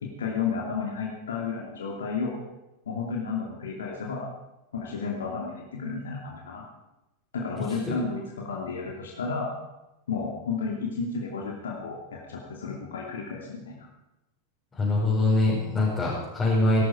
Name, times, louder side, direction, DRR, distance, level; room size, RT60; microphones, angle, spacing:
voice 1, 0.0-2.4 2.9-4.3 4.7-6.7 7.3-9.5 10.1-13.9, left 5 dB, 65° left, -1 dB, 2.6 m, -32 dB
voice 2, 14.7-16.8, left 2 dB, 15° left, -7 dB, 5.1 m, -23 dB
18.5 x 12.5 x 5.0 m, 0.96 s
figure-of-eight pair, 90°, 0 cm